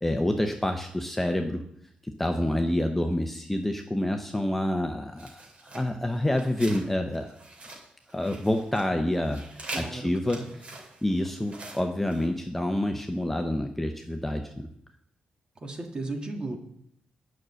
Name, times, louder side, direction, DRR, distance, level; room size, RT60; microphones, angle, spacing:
voice 1, 0.0-1.6 2.0-7.3 8.1-10.4 11.0-14.7, left 1 dB, 5° left, 4 dB, 0.7 m, -28 dB
sound 1, 5.2-6.9 7.1-8.8 9.1-12.3, right 2 dB, 45° right, 3.0 m, -43 dB
voice 2, 9.7-10.5 15.6-16.6, right 2 dB, 30° right, 3 dB, 1.8 m, -35 dB
9.3 x 6.4 x 7.5 m, 0.72 s
wide cardioid pair, 130°, 3 cm